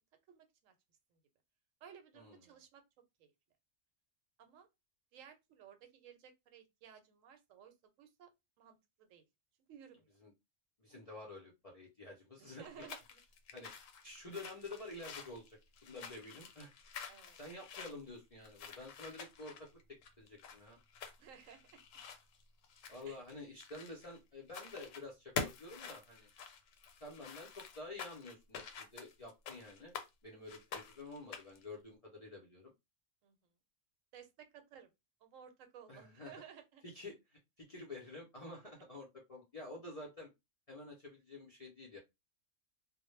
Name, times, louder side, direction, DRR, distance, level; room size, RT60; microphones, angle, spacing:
voice 1, 0.3-0.7 1.1-1.2 1.8-2.8 3.2-3.3 4.4-4.7 5.1-8.3 8.6-9.2 9.7-10.1 12.4-13.2 17.1-17.4 21.2-21.8 23.0-23.2 33.2-33.5 34.1-34.9 35.2-36.8, right 8 dB, 85° right, 1.0 m, -57 dB
voice 2, 10.8-12.9 13.5-13.7 14.0-16.7 17.4-19.7 20.2-20.8 22.9-26.3 27.0-29.9 30.2-32.7 35.9-36.3 36.8-40.3 40.7-42.0, left 2 dB, 50° left, 0.4 m, -49 dB
sound 1, 12.6-24.2 24.5-25.0 25.3-30.1 30.5-31.6, left 6 dB, 80° left, 0.9 m, -47 dB
2.1 x 2.0 x 3.0 m
omnidirectional pair, 1.3 m